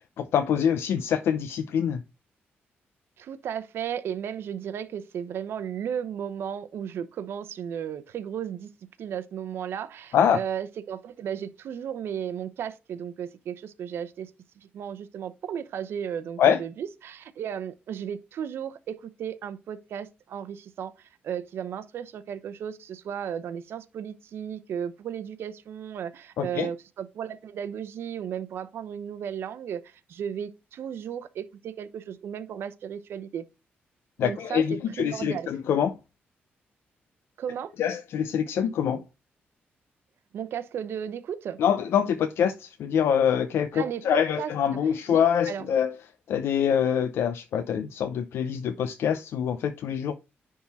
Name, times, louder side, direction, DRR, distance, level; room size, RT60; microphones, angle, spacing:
voice 1, 0.2-2.0 10.1-10.4 16.4-16.6 26.4-26.7 34.2-35.9 37.8-39.0 41.6-45.9 46.3-50.1, left 8 dB, 80° left, 0.6 m, -25 dB
voice 2, 3.2-8.7 9.0-14.3 14.6-33.4 34.2-35.5 37.4-37.7 40.3-41.6 43.7-44.5 45.1-45.7, right 8 dB, 75° right, 0.8 m, -35 dB
10.5 x 3.8 x 4.1 m
cardioid pair, 125°, 4 cm